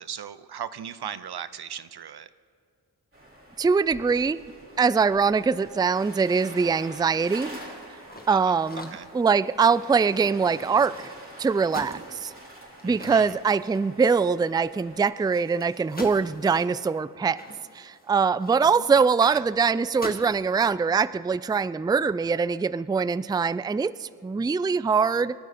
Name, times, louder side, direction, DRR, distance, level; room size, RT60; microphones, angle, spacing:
voice 1, 0.0-2.3 8.3-8.6 8.9-9.1 12.8-13.4 18.7-18.8 19.2-19.4, right 9 dB, 80° right, 15 dB, 0.6 m, -37 dB
sound 1, 3.1-15.0, right 1 dB, 35° right, 4.1 m, -46 dB
voice 2, 3.6-4.4 4.8-7.6 8.3-11.1 11.4-12.3 12.8-17.4 17.7-25.3, right 5 dB, 10° right, 17 dB, 0.3 m, -23 dB
sound 2, 8.1-11.2 11.7-14.3 14.6-14.7 15.1-19.0 19.4-19.6 19.9-20.4, left 1 dB, 25° left, 2.0 m, -44 dB
27.5 x 11.5 x 4.2 m, 2.2 s
cardioid pair, 45°, 38 cm